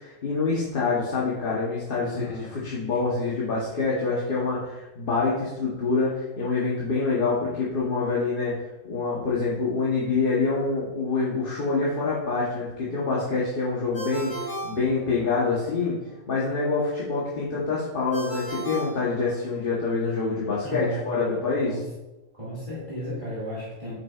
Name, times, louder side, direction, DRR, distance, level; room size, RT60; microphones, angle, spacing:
voice 1, 0.0-8.5 8.8-16.0 16.3-21.8, left 4 dB, 45° left, -6 dB, 1.2 m, -26 dB
voice 2, 2.0-2.5 2.9-3.2 20.6-21.4 21.7-21.9 22.3-24.0, equal, 25° right, -8 dB, 2.0 m, -35 dB
Ringtone, 13.9-15.6 18.1-19.8, right 1 dB, 15° left, 2.0 m, -35 dB
7.3 x 5.9 x 2.4 m, 1.0 s
omnidirectional pair, 1.3 m